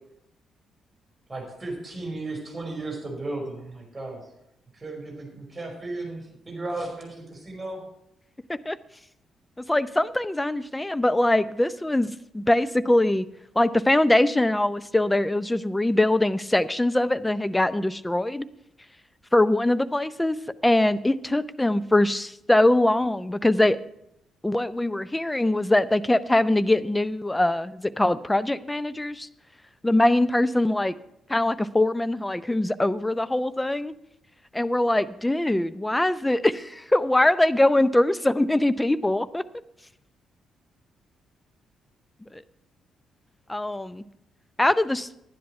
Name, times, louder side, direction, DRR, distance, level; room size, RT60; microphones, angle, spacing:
voice 1, 1.3-4.3 4.7-7.8, right 2 dB, 20° right, 0 dB, 5.2 m, -35 dB
voice 2, 9.7-13.3 13.6-18.4 19.3-20.4 20.6-23.8 24.4-29.3 29.8-30.9 31.3-33.9 34.5-39.4 42.3-42.4 43.5-44.0 44.6-45.1, left 1 dB, 15° left, 15 dB, 0.6 m, -22 dB
11.5 x 10.0 x 4.5 m, 0.80 s
hypercardioid pair, 45°, 0 cm